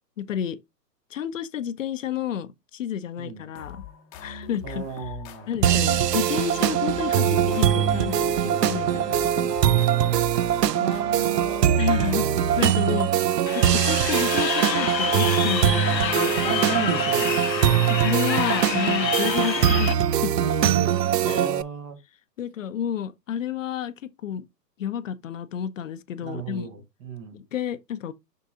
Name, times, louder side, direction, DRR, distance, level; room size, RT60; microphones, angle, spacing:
voice 1, 0.2-0.6 1.1-3.8 4.2-5.1 5.5-9.5 11.8-16.6 17.9-20.4 21.3-21.5 22.4-24.5 24.8-26.7 27.3-28.1, left 9 dB, 50° left, 0.7 m, -31 dB
sound 1, 3.5-13.1, left 9 dB, 20° left, 0.9 m, -41 dB
voice 2, 4.6-6.2 10.6-11.7 12.0-12.5 16.1-17.8 19.0-19.1 20.3-21.0 21.3-22.0 26.2-27.4, right 5 dB, 20° right, 0.8 m, -34 dB
sound 2, 5.6-21.6, right 10 dB, 70° right, 0.6 m, -22 dB
Crowd, 13.5-19.9, left 7 dB, 85° left, 1.1 m, -28 dB
6.6 x 6.1 x 2.4 m
hypercardioid pair, 130°, 50 cm